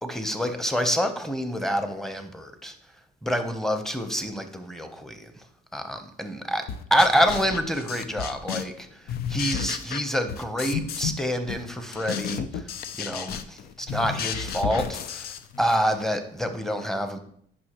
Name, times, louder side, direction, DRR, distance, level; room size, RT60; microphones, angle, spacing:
voice 1, 0.0-2.7 3.2-5.3 5.7-6.6 6.9-9.0 9.3-12.7 13.0-17.2, equal, ahead, 7 dB, 0.9 m, -27 dB
sound 1, 6.7-8.8 9.1-11.2 11.5-15.8, left 7 dB, 65° left, 0.6 m, -33 dB
9.5 x 5.6 x 3.1 m, 0.64 s
cardioid pair, 110°, 17 cm